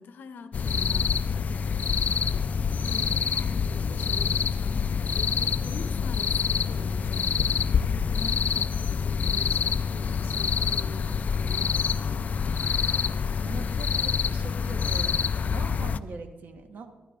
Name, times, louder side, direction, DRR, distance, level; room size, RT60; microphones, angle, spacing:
voice 1, 0.0-1.4 2.9-7.5 7.8-11.8, left 5 dB, 70° left, 9 dB, 0.7 m, -44 dB
sound 1, 0.5-16.0, left 6 dB, 50° left, 0.3 m, -26 dB
voice 2, 13.5-16.9, right 4 dB, 65° right, 6 dB, 1.1 m, -42 dB
15.0 x 13.0 x 2.4 m, 1.1 s
cardioid pair, 85°, 3 cm